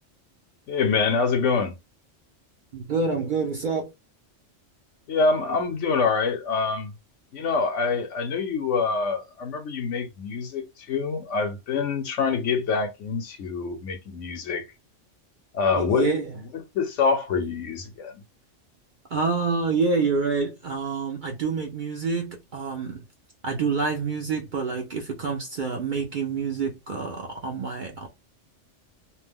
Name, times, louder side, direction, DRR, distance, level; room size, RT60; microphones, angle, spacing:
voice 1, 0.7-1.8 5.1-6.9 7.3-14.6 15.5-16.1 16.7-18.1, left 5 dB, 70° left, 1.1 m, -25 dB
voice 2, 2.7-3.9 15.7-16.3 19.1-23.0 23.4-28.1, right 4 dB, 55° right, 0.5 m, -27 dB
2.6 x 2.1 x 3.4 m
omnidirectional pair, 1.3 m